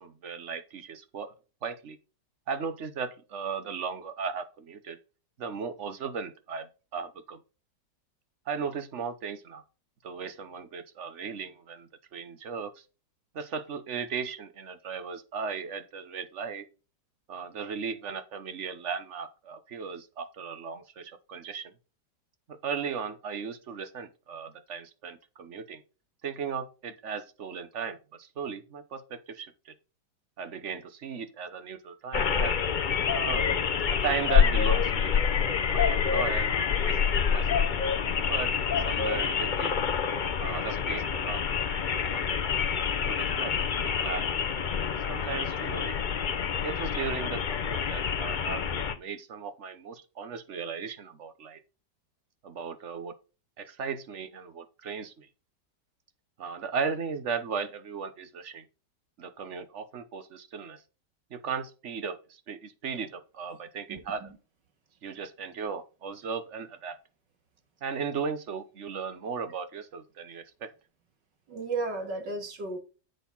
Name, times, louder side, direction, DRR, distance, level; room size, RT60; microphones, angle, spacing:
voice 1, 0.0-1.3 1.6-2.0 2.5-5.0 5.4-7.4 8.5-9.6 10.0-12.8 13.3-16.6 17.3-21.7 22.5-25.8 26.2-29.7 30.4-32.5 33.1-33.4 33.9-37.0 37.3-37.6 38.3-38.5 38.9-39.7 40.4-42.4 43.0-43.5 43.8-44.3 45.1-45.9 46.6-51.6 52.4-53.1 53.6-55.3 56.4-58.6 59.2-60.8 61.3-64.2 65.0-67.0 67.8-70.7, right 6 dB, 50° right, 1.1 m, -36 dB
sound 1, 32.1-48.9, left 7 dB, 65° left, 0.4 m, -27 dB
voice 2, 63.9-64.4 71.5-72.8, right 3 dB, 85° right, 2.5 m, -34 dB
7.9 x 6.5 x 4.0 m
omnidirectional pair, 1.9 m